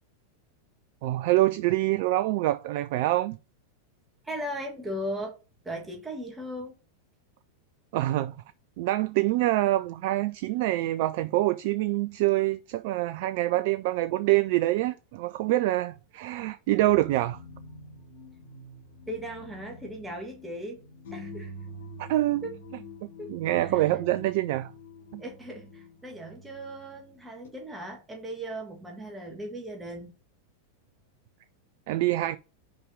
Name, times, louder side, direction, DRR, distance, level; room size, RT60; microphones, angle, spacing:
voice 1, 1.0-3.4 7.9-8.4 8.8-17.4 22.0-22.4 23.3-24.7 25.1-25.2 31.9-32.4, right 16 dB, 50° right, 0.3 m, -25 dB
voice 2, 4.2-5.3 5.6-6.7 19.1-20.8 21.1-21.5 22.4-22.5 23.2-24.0 25.2-30.1, equal, 10° right, 1.8 m, -37 dB
sound 1, 16.8-27.5, left 1 dB, 55° left, 2.4 m, -46 dB
5.4 x 5.0 x 5.2 m
figure-of-eight pair, 90°, 0 cm